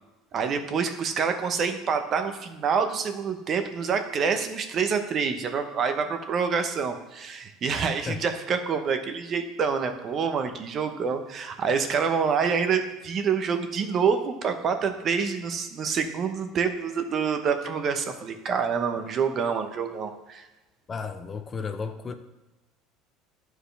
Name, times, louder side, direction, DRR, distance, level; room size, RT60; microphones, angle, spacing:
voice 1, 0.3-20.5, right 6 dB, 40° right, 0.9 m, -27 dB
voice 2, 20.9-22.1, left 5 dB, 25° left, 0.5 m, -33 dB
11.0 x 4.7 x 3.4 m
supercardioid pair, 115°, 0 cm